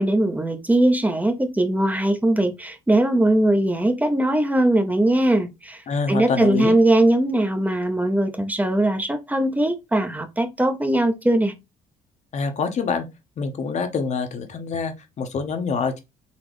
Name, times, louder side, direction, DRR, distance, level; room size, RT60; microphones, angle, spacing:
voice 1, 0.0-5.8 6.1-11.5, right 1 dB, 10° right, 0.7 m, -20 dB
voice 2, 5.9-6.7 12.3-13.1 13.4-16.0, left 5 dB, 45° left, 0.9 m, -26 dB
4.1 x 3.0 x 3.1 m
cardioid pair, 110°, 17 cm